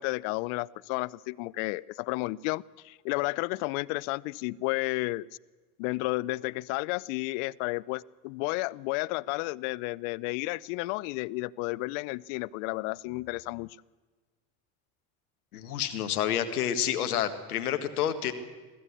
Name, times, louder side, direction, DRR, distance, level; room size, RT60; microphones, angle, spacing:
voice 1, 0.0-5.3 5.8-13.8, left 22 dB, 60° left, 20 dB, 0.6 m, -32 dB
voice 2, 15.5-18.3, left 10 dB, 80° left, 9 dB, 1.7 m, -29 dB
23.5 x 15.0 x 8.4 m, 1.3 s
hypercardioid pair, 70°, 44 cm